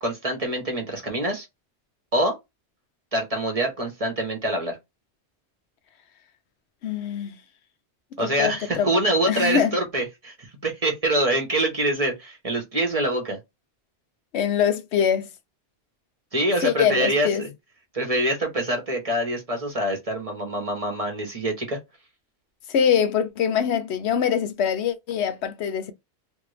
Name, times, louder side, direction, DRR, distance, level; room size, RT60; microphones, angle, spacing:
voice 1, 0.0-1.5 2.1-2.3 3.1-4.8 8.2-13.4 16.3-17.5 17.9-21.8, right 1 dB, 35° right, 1.1 m, -25 dB
voice 2, 6.8-7.4 8.2-8.9 9.3-9.8 14.3-15.3 16.6-17.4 22.7-25.9, left 8 dB, 75° left, 0.9 m, -23 dB
3.2 x 2.5 x 3.2 m
omnidirectional pair, 1.1 m